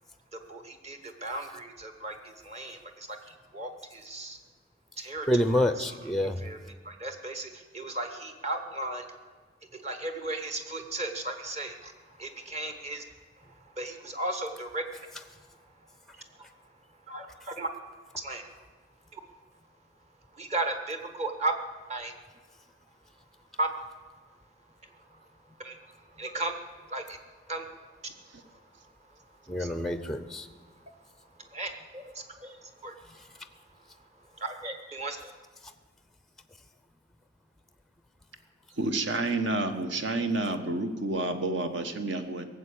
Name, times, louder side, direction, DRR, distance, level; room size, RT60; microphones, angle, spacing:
voice 1, 0.3-4.4 5.0-6.0 6.4-6.6 6.8-9.1 9.7-13.0 13.4-16.7 17.1-17.7 18.1-18.7 19.1-19.2 20.3-21.5 21.9-22.2 23.6-23.7 24.9-25.3 25.6-26.5 26.9-27.9 28.2-29.7 30.6-30.8 31.3-35.3, right 2 dB, 35° right, 6 dB, 1.4 m, -37 dB
voice 2, 5.3-6.4 29.5-30.5, left 1 dB, ahead, 11 dB, 0.5 m, -27 dB
voice 3, 38.8-42.5, right 2 dB, 60° right, 7 dB, 1.2 m, -29 dB
17.5 x 7.5 x 8.5 m, 1.4 s
head